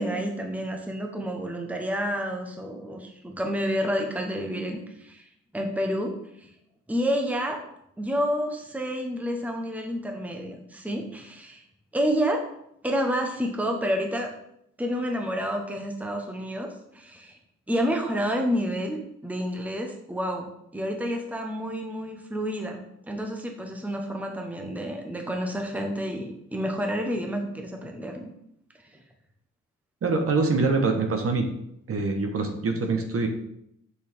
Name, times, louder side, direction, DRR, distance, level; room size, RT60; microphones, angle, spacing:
voice 1, 0.0-5.2 5.5-6.5 6.9-7.6 8.0-11.6 11.9-12.4 12.8-14.3 14.8-17.4 17.7-22.8 23.1-28.3, equal, 5° right, 2 dB, 1.1 m, -29 dB
voice 2, 30.0-31.5 31.9-33.3, right 3 dB, 50° right, 4 dB, 1.3 m, -24 dB
6.3 x 6.2 x 3.6 m, 0.75 s
cardioid pair, 90°, 30 cm